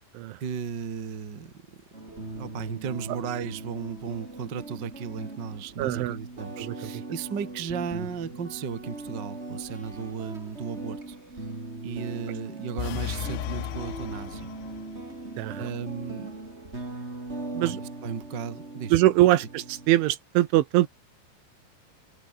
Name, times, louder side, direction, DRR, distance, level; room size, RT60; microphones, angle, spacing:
voice 1, 0.4-11.2 11.8-14.5 15.6-16.4 17.6-17.7 18.0-19.0, right 6 dB, 40° right, 1.7 m, -35 dB
sound 1, 1.9-20.1, right 2 dB, 15° right, 3.9 m, -40 dB
voice 2, 5.8-6.2 6.6-6.8 15.4-15.7 17.5-17.8 18.9-20.9, right 16 dB, 80° right, 3.4 m, -22 dB
sound 2, 12.8-15.0, left 15 dB, 90° left, 4.1 m, -35 dB
omnidirectional pair, 5.7 m